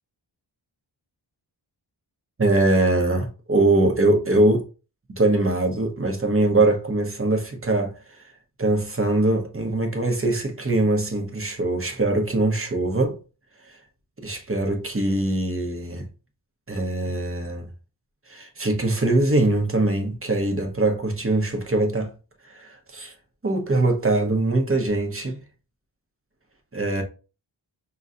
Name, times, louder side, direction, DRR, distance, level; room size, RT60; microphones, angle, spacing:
voice 1, 2.4-4.6 5.1-8.2 8.6-13.2 13.7-13.8 14.2-16.1 16.7-17.7 18.3-22.1 22.5-23.1 23.4-25.4 26.7-27.0, right 2 dB, 30° right, 0.9 m, -22 dB
5.4 x 3.1 x 2.5 m
wide cardioid pair, 65°, 47 cm